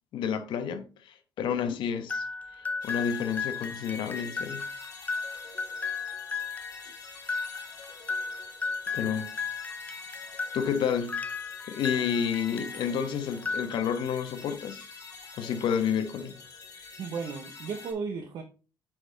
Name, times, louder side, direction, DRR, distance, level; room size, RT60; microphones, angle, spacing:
voice 1, 0.1-2.2 2.8-4.6 8.9-9.3 10.5-11.2 11.6-14.9 15.4-16.4, left 7 dB, 70° left, 1.1 m, -30 dB
sound 1, 2.1-13.0 13.3-14.2, left 5 dB, 20° left, 0.5 m, -35 dB
sound 2, 2.8-17.9, left 4 dB, 45° left, 3.0 m, -47 dB
voice 2, 17.0-18.4, right 5 dB, 60° right, 0.9 m, -34 dB
8.8 x 4.2 x 3.9 m
cardioid pair, 140°, 9 cm